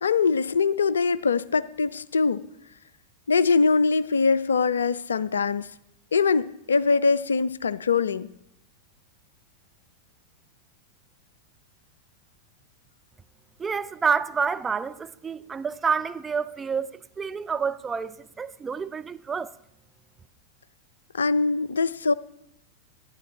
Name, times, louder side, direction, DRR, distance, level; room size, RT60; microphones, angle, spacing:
voice 1, 0.0-2.5 3.3-5.7 6.1-8.3 21.1-22.1, left 4 dB, 70° left, 0.3 m, -23 dB
voice 2, 13.6-16.9 17.2-19.5, right 6 dB, 15° right, 0.4 m, -28 dB
11.5 x 9.9 x 4.1 m
figure-of-eight pair, 90°, 0 cm